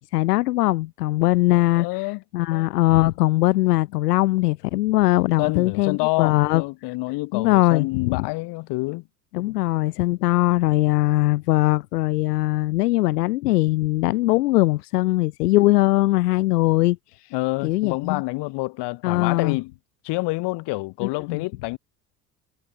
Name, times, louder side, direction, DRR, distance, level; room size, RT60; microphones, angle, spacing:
voice 1, 0.1-1.9 2.3-6.6 7.3-8.3 9.3-17.0 17.6-18.2 19.0-19.6 21.0-21.4, left 18 dB, 70° left, 1.8 m, -20 dB
voice 2, 1.8-2.2 5.4-9.0 17.3-19.7 20.0-21.8, left 23 dB, 55° left, 2.5 m, -27 dB
hypercardioid pair, 70°, 48 cm